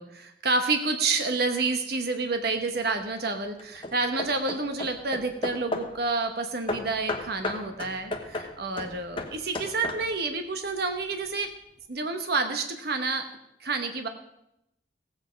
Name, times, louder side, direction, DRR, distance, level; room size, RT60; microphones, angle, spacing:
voice 1, 0.0-11.5 11.9-13.3 13.6-14.1, right 3 dB, 55° right, 6 dB, 1.0 m, -29 dB
Hammer / Wood, 2.5-2.9 3.6-6.0 6.7-10.3, left 2 dB, 25° left, 1.0 m, -35 dB
16.0 x 8.1 x 5.1 m, 0.83 s
head